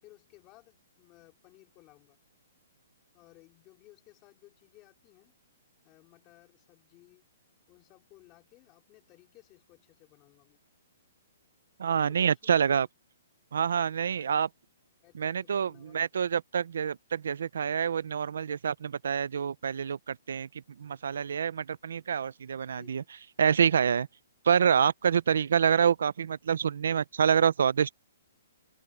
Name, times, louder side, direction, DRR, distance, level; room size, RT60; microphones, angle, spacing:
voice 1, 0.0-2.2 3.1-5.4 5.8-7.3 7.7-10.6 11.9-12.9 13.9-14.5 15.0-16.1 22.7-23.1, left 19 dB, 20° left, 3.5 m, -59 dB
voice 2, 11.8-12.9 13.5-14.5 15.2-20.5 20.8-23.0 23.4-24.1 24.4-27.9, right 7 dB, 70° right, 0.6 m, -27 dB
open air
hypercardioid pair, 175°, 0 cm